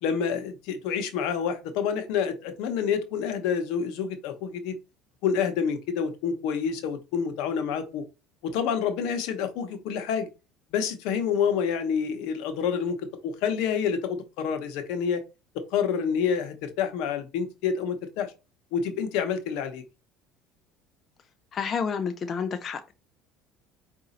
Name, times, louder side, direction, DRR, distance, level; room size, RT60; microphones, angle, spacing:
voice 1, 0.0-4.7 5.2-8.0 8.4-10.3 10.7-13.0 13.2-15.2 15.5-18.3 18.7-19.8, left 7 dB, 75° left, 0.9 m, -28 dB
voice 2, 21.5-22.9, left 6 dB, 35° left, 0.5 m, -30 dB
4.9 x 2.7 x 4.1 m
supercardioid pair, 110°, 0 cm